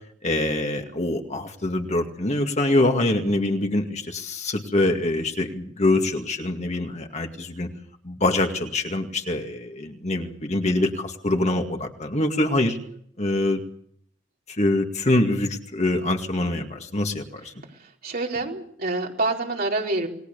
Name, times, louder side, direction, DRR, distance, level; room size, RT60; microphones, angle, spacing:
voice 1, 0.2-7.7 8.0-12.8 13.2-13.6 14.5-17.5, left 2 dB, 35° left, 4 dB, 2.2 m, -24 dB
voice 2, 18.0-20.1, right 2 dB, 50° right, 0 dB, 4.6 m, -26 dB
28.0 x 20.0 x 6.9 m, 0.68 s
head